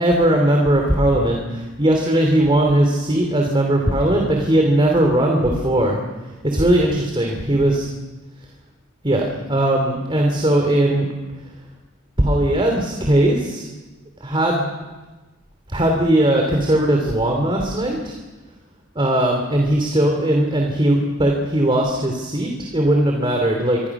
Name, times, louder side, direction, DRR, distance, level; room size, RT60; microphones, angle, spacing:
voice 1, 0.0-6.0 6.4-7.9 9.0-11.1 12.2-13.7 14.2-14.7 15.7-18.1 18.9-23.8, right 1 dB, 25° right, 1 dB, 2.8 m, -18 dB
26.0 x 23.5 x 6.0 m, 1.2 s
head